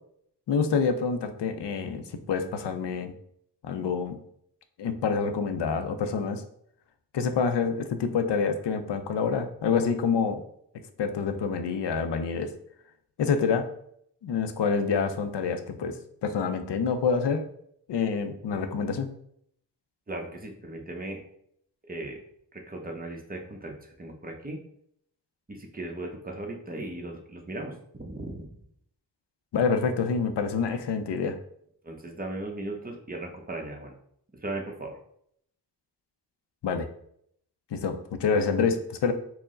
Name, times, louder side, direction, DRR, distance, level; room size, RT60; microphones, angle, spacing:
voice 1, 0.5-3.1 3.6-4.2 4.8-6.4 7.1-10.4 11.0-12.5 13.2-13.7 14.2-17.4 17.9-19.1 29.5-31.4 36.6-36.9 37.7-39.1, left 5 dB, 85° left, 9 dB, 0.5 m, -27 dB
voice 2, 20.1-21.2 21.8-22.2 22.5-24.6 25.5-28.5 31.8-33.9 34.4-35.0, right 2 dB, 20° right, 1 dB, 0.8 m, -37 dB
4.5 x 2.1 x 3.7 m, 0.70 s
wide cardioid pair, 65°, 41 cm